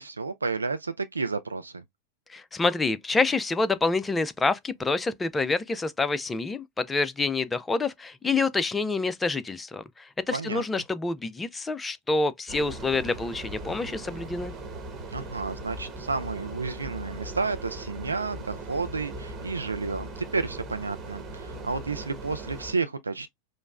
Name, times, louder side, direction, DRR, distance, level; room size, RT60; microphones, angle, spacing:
voice 1, 0.0-1.8 10.3-10.6 15.1-23.3, right 4 dB, 75° right, 0.3 m, -31 dB
voice 2, 2.3-14.5, left 3 dB, 15° left, 0.4 m, -27 dB
sound 1, 12.5-22.7, right 2 dB, 20° right, 1.2 m, -39 dB
5.0 x 2.0 x 2.3 m
figure-of-eight pair, 90°, 0 cm